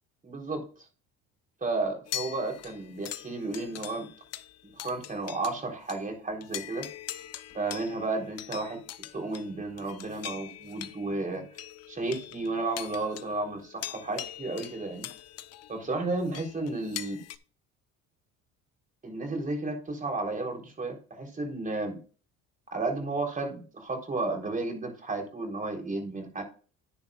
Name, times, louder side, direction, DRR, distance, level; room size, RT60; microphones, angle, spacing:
voice 1, 0.2-0.7 1.6-4.1 4.7-6.9 7.5-8.8 9.1-11.5 11.9-15.1 15.7-17.3 19.0-22.0 22.7-26.4, right 2 dB, 25° right, 2 dB, 3.8 m, -33 dB
sound 1, 2.1-5.6 5.9-6.0 6.4-17.4, left 12 dB, 50° left, 1.0 m, -42 dB
10.5 x 9.8 x 2.4 m, 0.38 s
cardioid pair, 105°, 32 cm